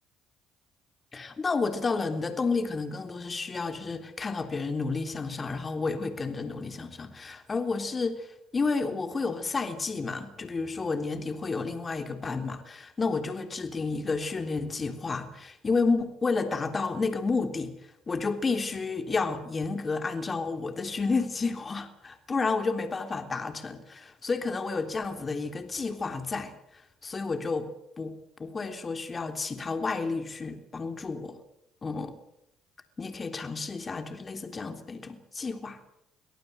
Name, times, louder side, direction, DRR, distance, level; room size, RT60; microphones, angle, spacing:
voice 1, 1.1-17.7 18.1-27.7 28.0-31.4 31.8-32.2 33.0-35.8, left 4 dB, 30° left, 7 dB, 3.4 m, -31 dB
24.5 x 18.0 x 8.1 m, 0.76 s
supercardioid pair, 70°, 0 cm